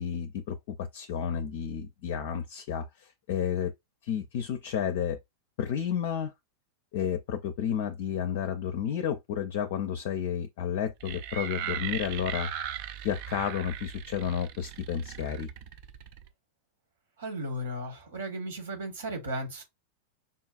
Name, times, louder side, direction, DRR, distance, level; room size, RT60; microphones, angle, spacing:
voice 1, 0.0-3.7 4.0-5.2 5.6-6.3 6.9-12.5 13.0-15.5, left 8 dB, 50° left, 0.4 m, -31 dB
sound 1, 11.0-16.3, right 10 dB, 45° right, 0.4 m, -38 dB
voice 2, 17.2-19.6, right 1 dB, 65° right, 1.2 m, -35 dB
5.4 x 2.3 x 2.4 m
figure-of-eight pair, 90°, 0 cm